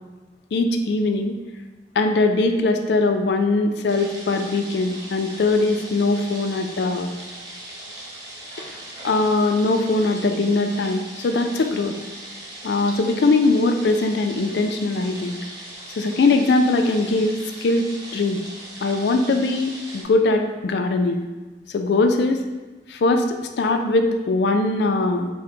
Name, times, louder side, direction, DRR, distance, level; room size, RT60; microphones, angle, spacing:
voice 1, 0.5-1.4 2.0-7.1 9.0-11.9 12.6-15.4 16.0-17.9 18.1-18.4 18.8-21.2 21.7-22.4 22.9-23.2 23.6-25.3, left 3 dB, 65° left, 5 dB, 0.3 m, -21 dB
sound 1, 3.9-20.0, right 1 dB, 20° right, 0.7 m, -39 dB
3.8 x 2.1 x 4.2 m, 1.2 s
head